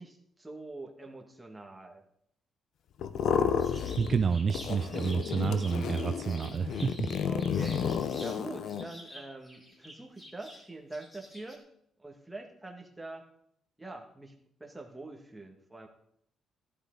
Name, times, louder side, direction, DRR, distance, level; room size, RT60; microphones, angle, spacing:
voice 1, 0.0-2.0 7.2-7.9 8.2-11.6 12.0-13.3 13.8-14.3 14.6-15.9, right 2 dB, 10° right, 2 dB, 1.8 m, -44 dB
sound 1, 3.0-4.2 4.5-8.8, left 7 dB, 75° left, 0.7 m, -31 dB
sound 2, 3.6-8.4 8.7-11.6, left 1 dB, 20° left, 4.1 m, -49 dB
voice 2, 4.0-7.1, right 6 dB, 40° right, 9 dB, 0.5 m, -29 dB
13.5 x 11.0 x 3.9 m, 0.71 s
cardioid pair, 90°, 0 cm